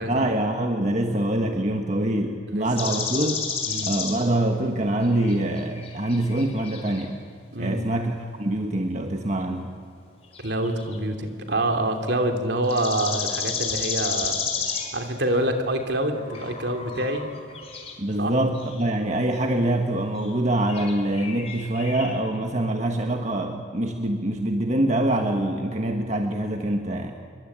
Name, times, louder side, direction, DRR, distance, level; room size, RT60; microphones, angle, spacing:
voice 1, 0.1-3.4 3.8-7.2 7.6-9.8 18.0-27.1, right 1 dB, 35° right, 3 dB, 1.5 m, -25 dB
voice 2, 2.5-2.9 3.6-3.9 7.5-7.8 10.4-14.5 14.9-17.3 18.2-18.3, right 1 dB, 60° right, 4 dB, 3.1 m, -26 dB
sound 1, 2.8-4.3 5.0-7.1 10.3-11.0 12.6-15.1 15.9-18.0 18.5-18.8 19.4-19.5 20.2-20.3 20.7-22.1, left 6 dB, 30° left, 4.2 m, -32 dB
27.5 x 23.0 x 8.8 m, 2.3 s
head